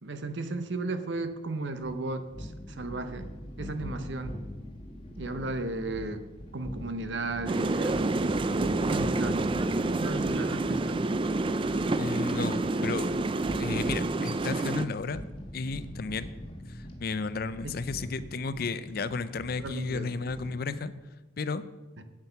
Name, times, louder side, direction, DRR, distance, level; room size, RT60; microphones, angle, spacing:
voice 1, 0.0-3.3 3.6-4.3 5.2-6.2 6.5-8.2 8.9-9.4 9.9-11.0 17.6-17.7 19.6-20.1, right 2 dB, 65° right, 9 dB, 0.9 m, -35 dB
sound 1, 1.1-20.6, equal, 25° left, 1.4 m, -43 dB
sound 2, 7.5-14.8, right 2 dB, 25° right, 0.4 m, -28 dB
voice 2, 12.0-13.1 13.6-15.2 15.5-16.3 16.7-20.9 21.4-21.6, left 4 dB, 50° left, 14 dB, 0.5 m, -33 dB
9.0 x 7.9 x 5.7 m, 1.2 s
head